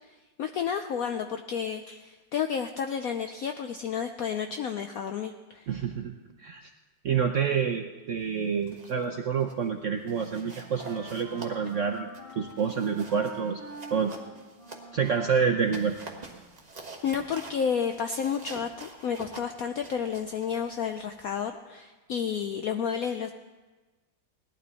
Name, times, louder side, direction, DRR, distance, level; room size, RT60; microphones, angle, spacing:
voice 1, 0.4-5.7 17.0-23.3, left 7 dB, 75° left, 7 dB, 0.8 m, -31 dB
voice 2, 5.7-6.1 6.4-6.7 7.0-12.1 12.3-13.6 13.9-14.1 14.9-15.9, right 6 dB, 65° right, 3 dB, 0.7 m, -28 dB
sound 1, 8.4-9.1 9.4-9.7 10.1-15.2 15.6-21.5, right 2 dB, 25° right, 1.3 m, -47 dB
Wind instrument woodwind instrument, 10.2-16.9, right 1 dB, 25° left, 2.9 m, -47 dB
18.0 x 12.0 x 4.1 m, 1.3 s
omnidirectional pair, 2.1 m